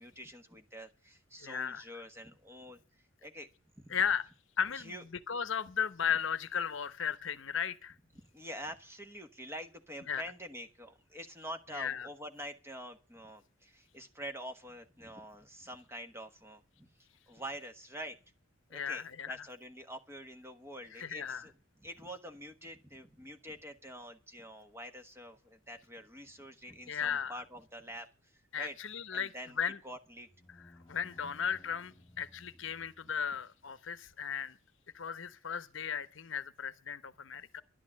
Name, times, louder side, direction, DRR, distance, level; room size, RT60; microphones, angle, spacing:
voice 1, 0.0-2.8 3.2-3.5 3.8-4.0 4.7-5.0 8.1-16.9 17.3-18.2 18.7-21.5 21.8-28.8 29.1-29.6 29.8-30.3, equal, 10° right, 1.3 m, -46 dB
voice 2, 1.4-2.0 3.9-4.3 4.6-4.9 5.3-7.9 10.1-10.2 11.7-12.1 18.7-19.4 20.9-21.5 26.9-27.3 28.5-29.8 30.9-34.6 34.9-37.6, left 7 dB, 65° left, 0.9 m, -35 dB
sound 1, 30.0-33.3, left 1 dB, 15° left, 2.5 m, -59 dB
11.5 x 10.5 x 7.5 m
head